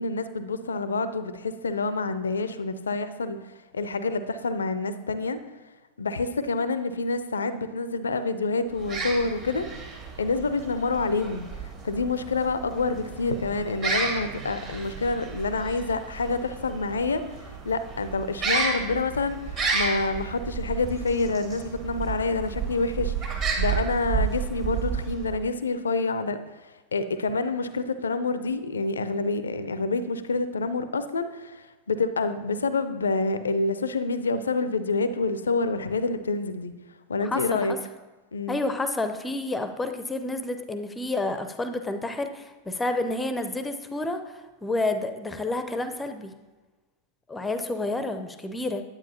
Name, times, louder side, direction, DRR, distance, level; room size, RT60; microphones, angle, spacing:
voice 1, 0.0-3.4 3.7-5.4 6.0-9.7 10.2-11.5 11.8-17.3 17.6-26.4 26.9-36.7 37.1-37.7 38.3-38.6, left 3 dB, 70° left, 12 dB, 0.4 m, -27 dB
sound 1, 8.7-25.5, right 5 dB, 35° right, 1.6 m, -32 dB
voice 2, 37.2-37.8 38.5-46.3 47.3-48.8, left 2 dB, 10° left, 8 dB, 0.6 m, -29 dB
9.8 x 8.6 x 2.8 m, 1.2 s
figure-of-eight pair, 90°, 0 cm